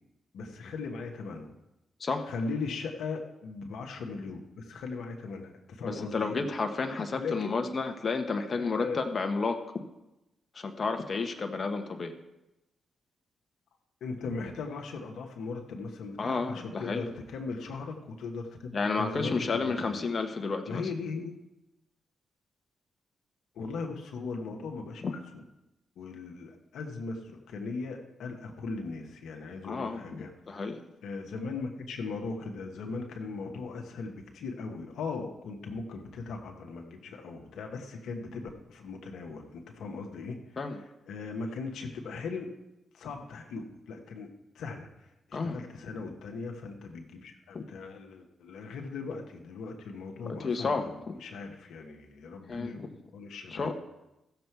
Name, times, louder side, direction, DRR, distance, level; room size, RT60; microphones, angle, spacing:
voice 1, 0.3-1.5 2.3-6.4 7.1-7.6 8.3-9.0 14.0-20.0 20.6-21.3 23.5-25.4 26.0-30.3 31.0-42.5 42.9-44.3 44.5-53.7, left 4 dB, 80° left, 3 dB, 1.3 m, -38 dB
voice 2, 5.9-9.8 10.5-12.1 16.2-17.1 18.7-20.9 25.0-25.1 29.6-30.8 40.6-40.8 45.3-45.6 47.5-47.6 50.4-51.1 52.5-52.9 53.5-53.7, left 4 dB, 50° left, 5 dB, 1.2 m, -31 dB
14.5 x 6.9 x 4.7 m, 0.93 s
supercardioid pair, 45°, 0 cm